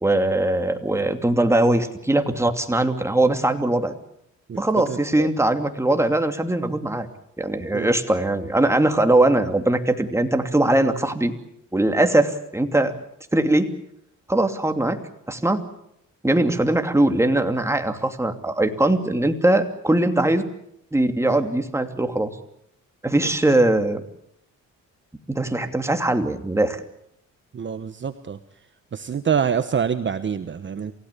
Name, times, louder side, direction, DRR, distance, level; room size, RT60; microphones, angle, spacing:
voice 1, 0.0-3.9 4.6-7.1 7.4-11.3 11.7-12.9 13.3-13.7 14.3-15.0 15.3-15.6 16.2-20.4 20.9-22.3 23.0-24.0 25.3-26.8, right 1 dB, 10° right, 6 dB, 2.7 m, -21 dB
voice 2, 4.5-5.3 7.7-7.9 21.3-21.4 23.2-23.3 27.5-28.4 28.9-30.9, right 7 dB, 40° right, 10 dB, 1.2 m, -26 dB
28.0 x 16.5 x 8.5 m, 0.77 s
cardioid pair, 90°, 30 cm